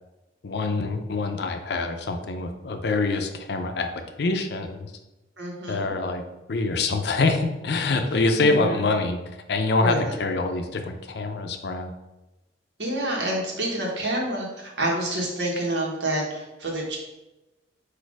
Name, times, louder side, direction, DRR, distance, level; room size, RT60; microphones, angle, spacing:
voice 1, 0.4-3.9 4.2-4.9 5.7-6.2 6.5-9.2 9.5-11.9, left 3 dB, 65° left, 6 dB, 0.5 m, -25 dB
voice 2, 5.4-5.9 8.4-8.8 9.8-10.1 12.8-17.0, right 1 dB, 75° right, -1 dB, 1.2 m, -28 dB
4.2 x 2.6 x 4.7 m, 1.0 s
head